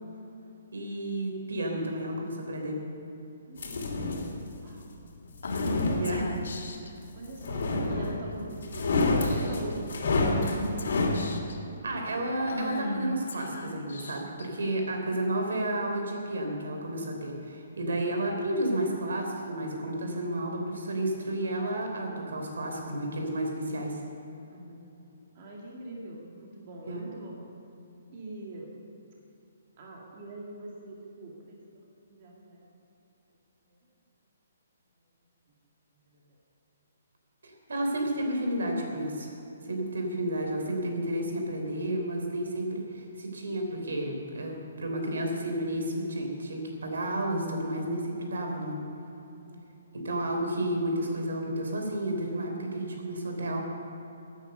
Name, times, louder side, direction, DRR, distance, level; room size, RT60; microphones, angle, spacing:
voice 1, 0.7-2.8 6.0-6.3 11.8-24.0 26.9-27.0 37.7-39.3 39.6-48.8 49.9-53.6, right 1 dB, 85° right, 2 dB, 3.6 m, -31 dB
voice 2, 3.5-4.3 4.6-4.9 5.6-5.8 6.2-6.3 7.1-11.1 24.5-24.9 25.3-27.4 28.1-28.7 29.8-31.5 32.0-32.7 36.1-36.2 49.5-49.7, right 2 dB, 30° right, -3 dB, 2.1 m, -43 dB
sound 1, 3.6-4.4 5.2-6.5 7.4-8.3 8.6-11.2, left 2 dB, 60° left, 2.9 m, -28 dB
Female speech woman speaking / Whispering, 5.4-6.9 7.9-8.3 8.7-8.9 9.2-9.7 10.5-11.6 12.5-14.4, left 2 dB, 80° left, 1.7 m, -36 dB
17.0 x 9.3 x 6.8 m, 2.9 s
hypercardioid pair, 175°, 0 cm